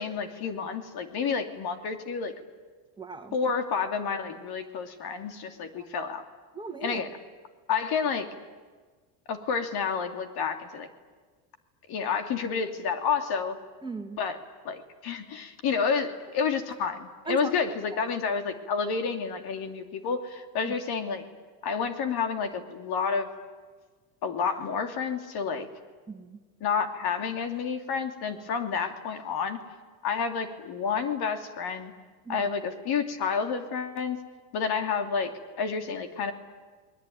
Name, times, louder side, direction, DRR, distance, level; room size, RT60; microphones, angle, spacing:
voice 1, 0.0-2.3 3.3-6.2 6.8-7.1 7.7-8.3 9.3-10.9 11.9-13.6 14.2-14.4 14.6-21.2 21.6-23.3 24.2-25.7 26.6-29.6 30.0-31.9 32.3-34.2 34.5-36.3, left 6 dB, 50° left, 7 dB, 2.8 m, -30 dB
voice 2, 3.0-3.3 5.8-5.9 6.5-7.0 13.8-14.2 17.3-17.5 20.6-20.7 26.1-26.4 32.3-32.4, right 5 dB, 10° right, 4 dB, 2.4 m, -37 dB
29.0 x 21.0 x 9.4 m, 1.4 s
supercardioid pair, 115°, 49 cm